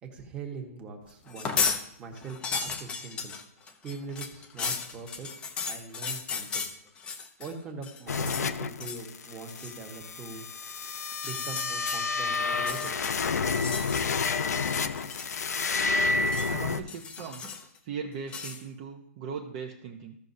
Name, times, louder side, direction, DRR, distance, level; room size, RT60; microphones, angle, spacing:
voice 1, 0.0-3.3 3.8-5.3 5.6-6.7 7.4-10.4 11.2-13.2, right 4 dB, 15° right, 1 dB, 1.3 m, -42 dB
sound 1, 1.3-1.8 2.2-7.5 7.8-8.5 8.8-9.1 9.5-9.8 11.1-12.0 12.5-14.3 14.6-15.5 15.7-16.5 16.9-17.8 18.3-18.6, left 6 dB, 10° left, 0.7 m, -35 dB
sound 2, 8.1-16.8, left 4 dB, 90° left, 0.8 m, -30 dB
voice 2, 16.5-17.5 17.8-20.2, right 6 dB, 30° right, 1 dB, 0.8 m, -39 dB
15.5 x 6.2 x 2.7 m, 0.73 s
hypercardioid pair, 165°, 8 cm